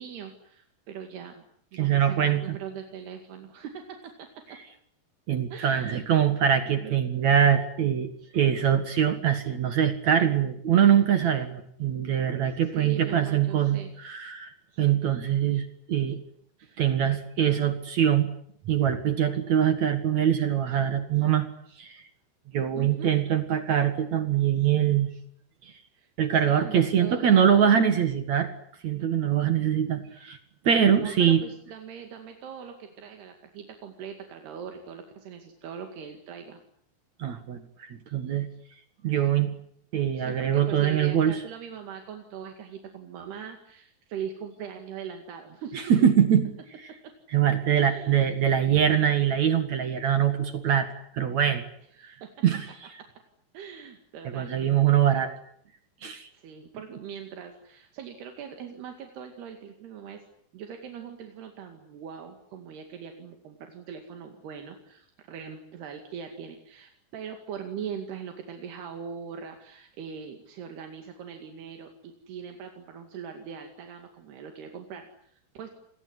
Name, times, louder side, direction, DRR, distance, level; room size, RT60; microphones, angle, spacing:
voice 1, 0.0-1.5 1.7-4.1 4.5-4.6 5.5-6.0 6.8-6.9 12.7-13.9 16.6-16.8 22.8-23.1 25.9-26.1 26.5-27.4 30.1-30.3 30.9-36.6 40.2-45.9 47.8-48.2 52.0-52.3 53.5-54.9 56.3-60.2 60.5-75.7, right 7 dB, 80° right, 5 dB, 4.3 m, -41 dB
voice 2, 1.8-2.6 5.3-16.2 16.8-18.3 18.7-21.5 21.8-22.0 22.5-25.1 26.2-28.5 28.8-30.4 30.6-31.4 37.2-38.5 39.0-39.5 39.9-41.4 45.9-46.4 47.3-50.9 51.1-51.6 52.0-52.1 52.4-52.7 54.3-55.3 56.0-56.3, right 9 dB, 55° right, 10 dB, 2.5 m, -23 dB
27.5 x 20.5 x 9.7 m, 0.65 s
omnidirectional pair, 4.6 m